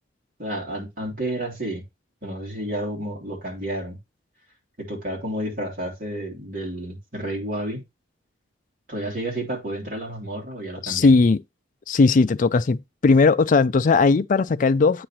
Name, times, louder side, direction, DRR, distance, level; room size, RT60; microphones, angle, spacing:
voice 1, 0.4-1.8 2.2-4.0 4.8-7.8 8.9-11.1, right 1 dB, 45° right, 3.2 m, -31 dB
voice 2, 10.8-11.4 11.9-15.1, left 4 dB, 45° left, 0.4 m, -18 dB
8.7 x 3.1 x 5.7 m
head